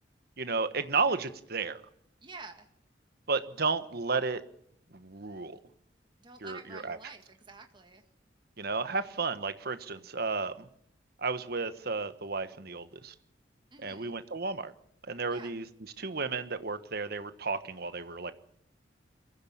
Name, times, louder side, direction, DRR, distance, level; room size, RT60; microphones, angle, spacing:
voice 1, 0.4-1.8 3.3-4.4 4.9-5.6 6.4-7.0 8.6-10.7 11.2-13.1 13.8-14.7 15.1-15.7 16.0-18.3, right 4 dB, 60° right, 11 dB, 1.4 m, -33 dB
voice 2, 2.2-2.7 6.2-8.0 13.7-14.2 15.3-15.5, right 3 dB, 25° right, 4 dB, 1.9 m, -49 dB
23.0 x 15.0 x 8.7 m, 0.71 s
head